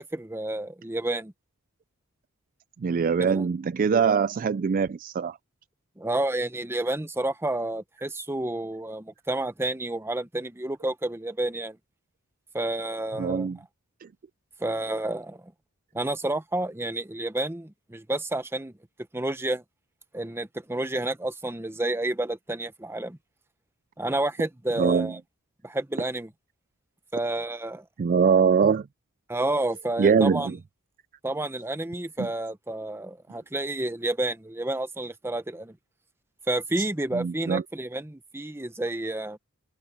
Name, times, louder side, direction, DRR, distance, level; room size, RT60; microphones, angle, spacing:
voice 1, 0.0-1.3 3.2-3.5 6.0-11.8 12.5-13.5 14.6-15.5 15.9-18.7 19.1-19.6 20.1-23.2 24.0-25.2 25.6-26.3 27.1-27.8 29.3-30.5 31.2-35.8 36.5-39.4, right 1 dB, 10° right, 0.8 m, -30 dB
voice 2, 2.8-5.4 13.2-13.6 14.0-14.1 24.8-25.1 28.0-28.9 30.0-30.6 32.2-32.3 36.8-36.9 37.1-37.6, right 6 dB, 40° right, 0.3 m, -23 dB
head